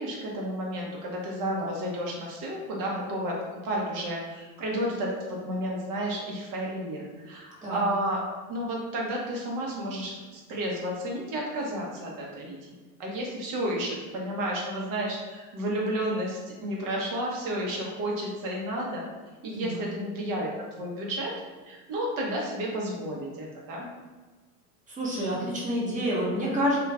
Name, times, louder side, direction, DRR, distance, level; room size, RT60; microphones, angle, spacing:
voice 1, 0.0-8.2 8.5-19.0 19.4-21.3 21.7-23.9, right 1 dB, 50° right, -2 dB, 0.9 m, -32 dB
voice 2, 19.5-19.8 24.9-26.8, equal, 20° right, -5 dB, 1.0 m, -28 dB
2.4 x 2.4 x 3.2 m, 1.3 s
supercardioid pair, 100°, 43 cm